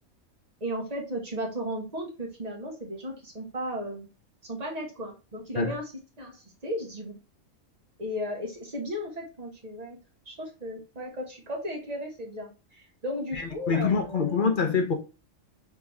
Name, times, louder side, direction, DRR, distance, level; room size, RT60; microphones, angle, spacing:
voice 1, 0.6-4.1 4.4-5.9 6.2-7.2 8.0-10.0 10.2-14.4, equal, 30° right, 1.4 m, -35 dB
voice 2, 13.3-14.9, left 5 dB, 45° left, 0.7 m, -25 dB
3.6 x 3.5 x 3.3 m
omnidirectional pair, 1.4 m